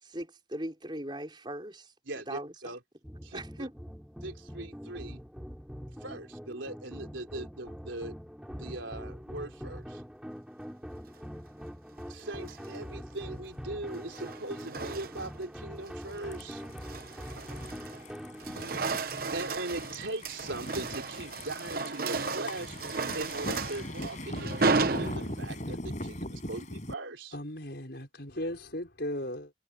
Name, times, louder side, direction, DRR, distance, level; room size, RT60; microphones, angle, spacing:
voice 1, 0.0-1.9 2.3-2.5 3.3-3.7, right 1 dB, 25° right, 5.4 m, -39 dB
voice 2, 2.1-2.8 3.2-3.7 4.2-5.2 6.0-8.1 8.5-10.0 12.1-16.6 19.0-22.8 23.1-27.4, right 2 dB, 85° right, 4.0 m, -40 dB
sound 1, 3.0-18.7, equal, 5° right, 7.3 m, -43 dB
sound 2, 12.3-12.8 13.9-15.4 15.9-16.2 16.6-18.1 18.3-25.7, right 3 dB, 50° right, 1.0 m, -34 dB
sound 3, 16.1-26.9, left 1 dB, 40° left, 7.6 m, -41 dB
voice 3, 27.3-29.5, left 1 dB, 60° left, 5.9 m, -36 dB
head